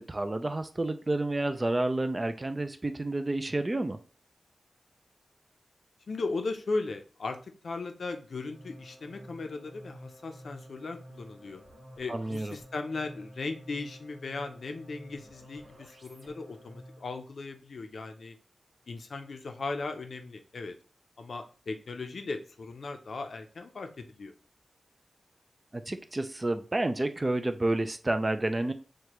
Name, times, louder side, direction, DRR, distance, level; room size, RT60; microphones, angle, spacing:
voice 1, 0.0-4.0 12.1-12.5 25.7-28.7, right 2 dB, 25° right, 8 dB, 0.3 m, -30 dB
voice 2, 6.1-7.4 7.6-11.6 12.0-18.3 18.9-20.7 21.2-24.3, left 3 dB, 70° left, 6 dB, 0.5 m, -37 dB
sound 1, 8.4-17.2, equal, 50° right, 1.2 m, -51 dB
6.4 x 2.2 x 2.9 m, 0.39 s
wide cardioid pair, 115°, 0 cm